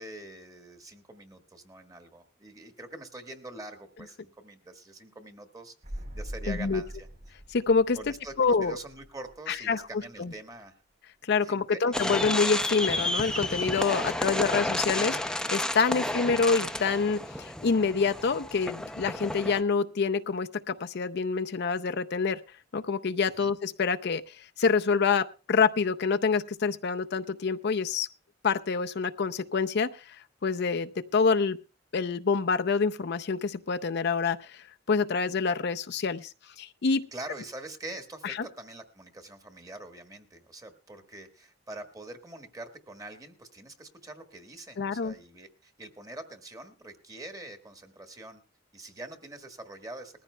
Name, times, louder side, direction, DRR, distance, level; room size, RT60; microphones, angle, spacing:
voice 1, 0.0-7.3 7.9-10.8 11.4-12.0 13.9-14.5 23.4-23.5 37.1-48.4 48.7-50.2, right 2 dB, 20° right, 1.4 m, -44 dB
sound 1, 5.8-9.6 9.8-9.9, equal, 50° right, 4.3 m, -42 dB
voice 2, 6.5-6.8 7.5-8.0 8.4-8.8 9.5-9.8 10.2-10.3 11.2-22.4 22.7-28.1 28.4-30.2 30.4-31.6 31.9-36.3 36.6-37.1 38.2-38.5 44.8-45.1, left 5 dB, 55° left, 0.5 m, -27 dB
sound 2, 11.9-19.6, left 1 dB, 5° left, 0.5 m, -31 dB
20.5 x 14.5 x 2.2 m
head